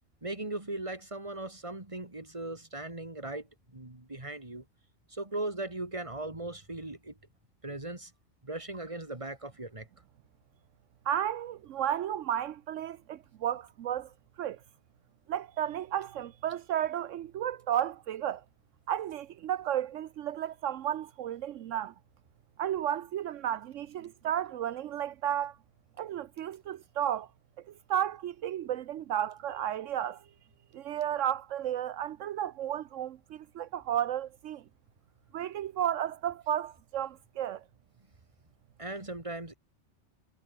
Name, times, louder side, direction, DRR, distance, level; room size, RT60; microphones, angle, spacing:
voice 1, 0.2-4.6 5.1-7.2 7.6-8.1 8.4-9.9 38.8-39.5, right 2 dB, 25° right, 3.0 m, -38 dB
voice 2, 11.0-14.1 14.4-14.6 15.3-18.4 18.9-21.9 22.6-25.6 26.0-27.3 27.7-30.2 30.7-34.6 35.3-37.6, right 10 dB, 80° right, 1.1 m, -33 dB
omnidirectional pair, 1.3 m